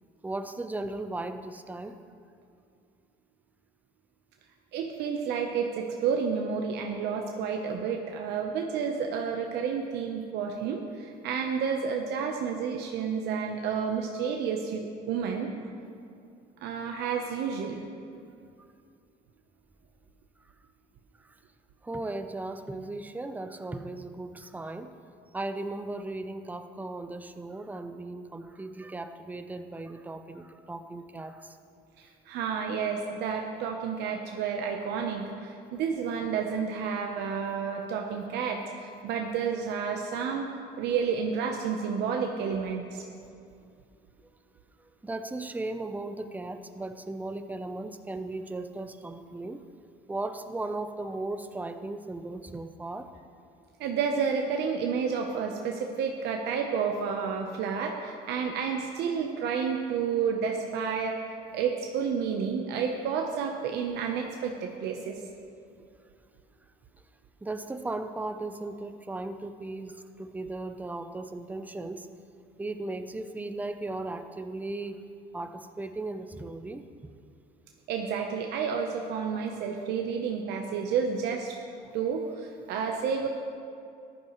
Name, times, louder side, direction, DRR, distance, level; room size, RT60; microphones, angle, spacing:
voice 1, 0.2-2.0 21.8-24.9 25.3-31.6 45.0-49.6 50.1-53.1 67.4-72.1 72.6-75.0 75.3-76.9, right 2 dB, 10° right, 8 dB, 0.5 m, -36 dB
voice 2, 4.7-15.5 16.6-17.8 32.3-40.5 40.8-43.0 53.8-61.2 61.5-65.2 77.9-81.5 81.9-83.3, right 6 dB, 80° right, 2 dB, 0.8 m, -30 dB
14.0 x 11.0 x 3.1 m, 2.4 s
cardioid pair, 110°, 17 cm